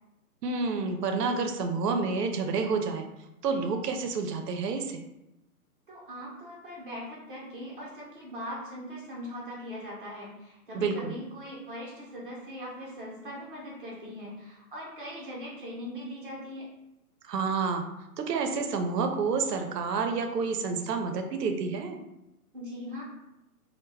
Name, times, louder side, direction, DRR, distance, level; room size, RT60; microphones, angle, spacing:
voice 1, 0.4-3.1 3.4-5.0 10.7-11.1 17.2-17.8 18.2-22.0, right 4 dB, 85° right, 5 dB, 0.6 m, -29 dB
voice 2, 5.9-16.7 22.5-23.0, equal, 35° right, -5 dB, 0.7 m, -40 dB
2.2 x 2.1 x 3.2 m, 0.92 s
hypercardioid pair, 170°, 47 cm